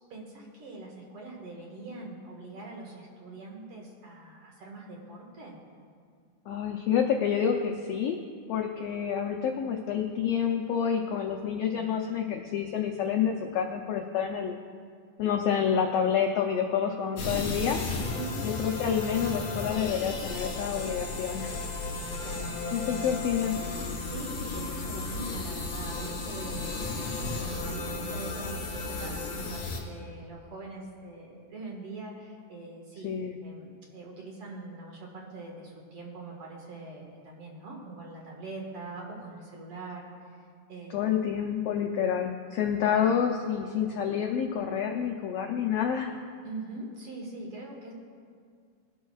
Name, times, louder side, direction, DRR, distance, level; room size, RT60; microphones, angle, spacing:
voice 1, 0.1-5.6 11.7-11.9 18.1-18.4 22.1-22.6 22.9-23.0 23.8-33.1 33.4-40.4 40.7-41.0 46.4-47.9, right 2 dB, 50° right, -1 dB, 2.4 m, -43 dB
voice 2, 6.5-8.2 8.5-14.6 15.2-17.8 18.4-21.5 22.7-23.6 33.0-33.4 40.9-46.1, left 8 dB, 85° left, 3 dB, 1.4 m, -28 dB
sound 1, 17.2-29.8, left 3 dB, 55° left, 2.8 m, -34 dB
21.0 x 12.0 x 2.4 m, 2.1 s
omnidirectional pair, 3.6 m